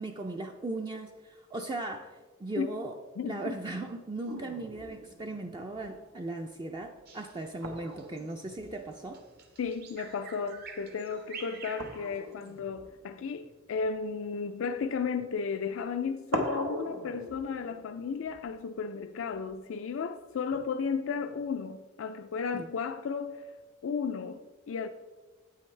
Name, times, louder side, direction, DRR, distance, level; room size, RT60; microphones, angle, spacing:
voice 1, 0.0-3.0 3.2-9.2 22.5-22.7, right 2 dB, 20° right, 0.4 m, -38 dB
voice 2, 3.2-3.5 9.6-23.5 23.8-24.9, left 5 dB, 75° left, 0.4 m, -34 dB
sound 1, 4.3-10.2 10.4-10.8 11.7-15.0 15.8-15.9 16.3-19.5 20.5-21.5, equal, 90° right, 1.2 m, -42 dB
Bird vocalization bird call bird song, 7.1-12.6, right 5 dB, 50° right, 1.0 m, -48 dB
9.3 x 8.4 x 3.2 m
head